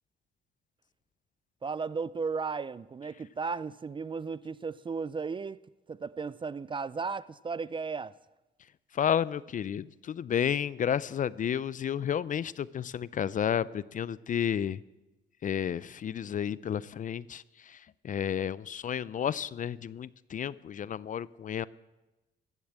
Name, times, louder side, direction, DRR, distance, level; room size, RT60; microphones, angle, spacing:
voice 1, 1.6-5.6 5.9-8.1, right 5 dB, 25° right, 0.4 m, -35 dB
voice 2, 8.9-14.8 15.4-17.8 18.0-21.7, left 9 dB, 40° left, 0.4 m, -31 dB
15.0 x 7.0 x 8.8 m
cardioid pair, 90°, 20 cm